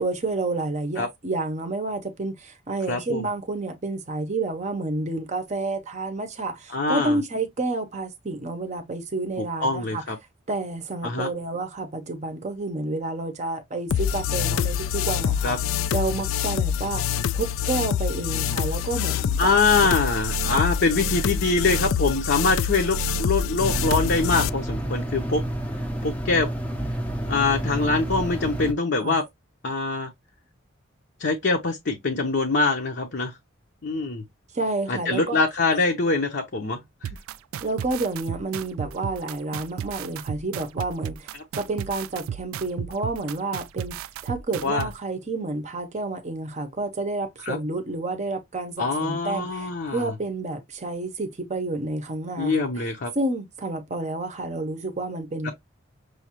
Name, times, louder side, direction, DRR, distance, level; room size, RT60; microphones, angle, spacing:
voice 1, 0.0-10.0 10.5-15.6 15.9-19.6 29.0-29.2 34.5-35.4 37.6-52.9 53.1-55.5, right 2 dB, 35° right, 0.6 m, -30 dB
voice 2, 2.9-3.3 6.7-7.2 9.4-10.2 11.0-11.3 15.4-15.6 19.4-25.4 26.0-26.5 27.2-29.2 29.6-30.1 31.2-33.3 33.8-34.2 34.9-37.1 44.6-44.9 47.5-47.6 48.8-50.1 52.4-53.1 55.4-55.5, left 3 dB, 55° left, 0.7 m, -24 dB
sound 1, 13.9-24.5, left 7 dB, 80° left, 0.3 m, -26 dB
sound 2, 23.6-28.7, right 1 dB, 5° left, 0.5 m, -29 dB
sound 3, 37.0-44.9, right 9 dB, 90° right, 0.3 m, -33 dB
6.2 x 2.3 x 2.8 m
head